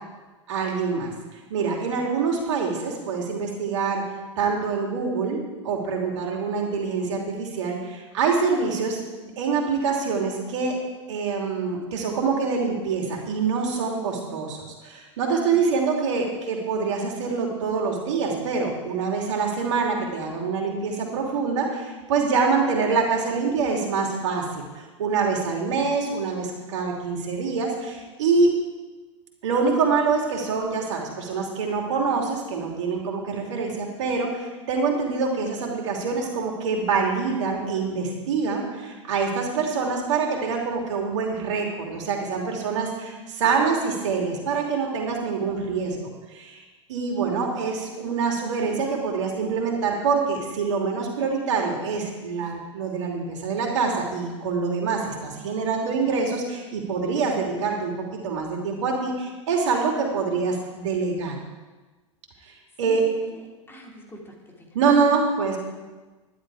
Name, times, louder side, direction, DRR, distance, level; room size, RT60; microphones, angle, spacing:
voice 1, 0.5-1.1 1.5-4.0 4.4-10.8 11.1-28.5 29.4-46.0 46.3-46.6 46.9-61.4 62.8-63.1 64.7-65.6, right 5 dB, 65° right, 1 dB, 3.0 m, -25 dB
voice 2, 15.5-16.4 47.3-48.4 62.5-62.6 62.8-64.7, right 1 dB, 15° left, -1 dB, 2.9 m, -45 dB
12.5 x 11.0 x 4.9 m, 1.3 s
hypercardioid pair, 100°, 16 cm